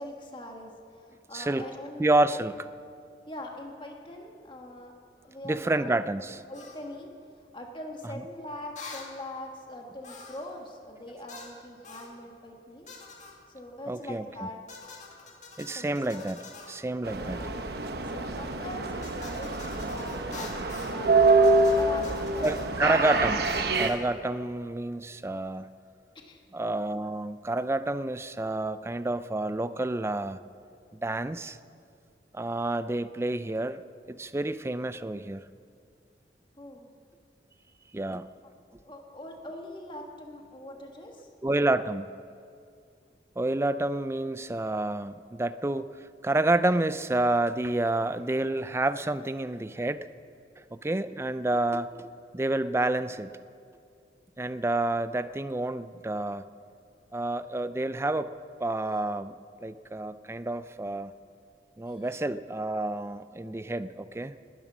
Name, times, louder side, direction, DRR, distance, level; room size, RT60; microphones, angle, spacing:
voice 1, 0.0-2.0 2.3-2.5 3.3-4.9 5.2-7.1 7.5-12.9 13.5-14.6 15.7-16.4 17.1-17.7 18.0-22.6 26.2-26.4 36.6-36.9 38.4-38.5 38.8-41.3 61.9-62.0, left 1 dB, 30° left, 2 dB, 1.6 m, -42 dB
voice 2, 1.3-1.6 2.0-2.6 5.4-6.4 13.9-14.5 15.6-16.4 16.7-17.4 22.4-25.7 26.5-30.4 30.9-31.6 32.3-33.8 34.1-35.4 37.9-38.3 41.4-42.1 43.4-45.9 46.2-50.1 50.7-52.1 52.3-53.4 54.4-56.4 57.1-58.3 58.6-61.1 61.8-64.3, right 2 dB, 15° right, 13 dB, 0.4 m, -29 dB
sound 1, 6.5-6.8 8.8-9.1 10.0-10.5 11.3-11.6 11.8-12.1 12.9-13.4 14.7-16.8 19.0-21.0 21.4-22.7 23.4-24.0, left 4 dB, 45° left, 2.1 m, -46 dB
sound 2, 17.0-23.9, right 3 dB, 60° right, 1.0 m, -26 dB
20.0 x 11.0 x 6.2 m, 2.4 s
head